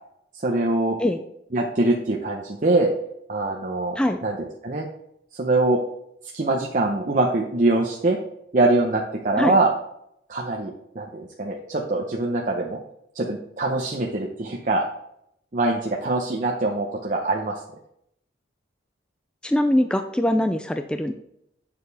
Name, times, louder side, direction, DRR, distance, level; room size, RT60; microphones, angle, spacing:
voice 1, 0.4-1.0 1.5-2.9 3.3-4.9 5.3-5.8 6.3-8.2 8.5-9.7 10.3-12.8 13.1-14.8 15.5-17.6, right 2 dB, 45° right, 0 dB, 0.7 m, -23 dB
voice 2, 19.4-21.1, left 1 dB, 5° left, 7 dB, 0.3 m, -22 dB
8.9 x 6.8 x 3.4 m, 0.76 s
head